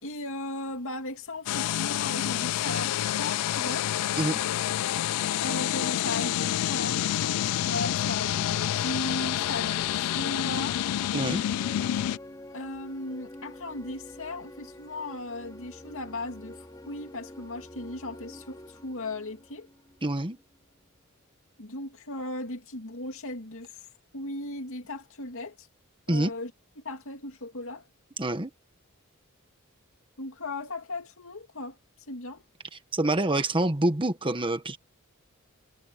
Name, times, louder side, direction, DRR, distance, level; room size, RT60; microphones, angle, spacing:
voice 1, 0.0-3.9 5.4-10.8 12.5-19.7 21.6-23.9 24.1-25.7 26.1-26.5 26.8-27.8 30.2-31.8 32.1-32.4, left 2 dB, 60° left, 2.6 m, -37 dB
sound 1, 1.5-12.2, left 12 dB, 90° left, 0.3 m, -28 dB
sound 2, 7.8-20.4, left 1 dB, 15° left, 2.6 m, -48 dB
voice 2, 11.1-11.4 20.0-20.4 26.1-26.3 28.2-28.5 32.9-34.8, right 1 dB, 25° right, 1.4 m, -26 dB
head